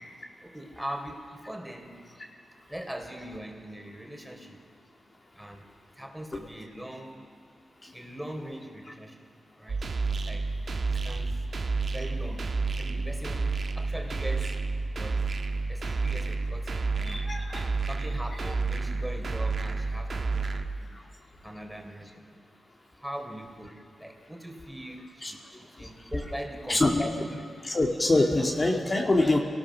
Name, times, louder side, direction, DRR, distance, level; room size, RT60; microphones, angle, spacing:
voice 1, 0.4-2.0 2.7-4.6 5.3-5.6 6.0-7.2 7.9-9.2 9.6-9.8 10.2-10.5 10.7-11.4 11.9-14.6 14.9-15.2 15.7-17.3 17.9-21.0 21.4-22.4 23.0-27.3 28.3-28.5, right 1 dB, 5° right, 3 dB, 3.5 m, -41 dB
sound 1, 9.7-20.7, right 3 dB, 60° right, 1.6 m, -30 dB
voice 2, 17.0-17.7 18.4-18.5 25.2-25.3 25.8-25.9 26.7-27.1 27.6-29.4, left 2 dB, 35° left, 0 dB, 2.2 m, -25 dB
27.0 x 18.5 x 6.3 m, 2.2 s
cardioid pair, 55°, 0 cm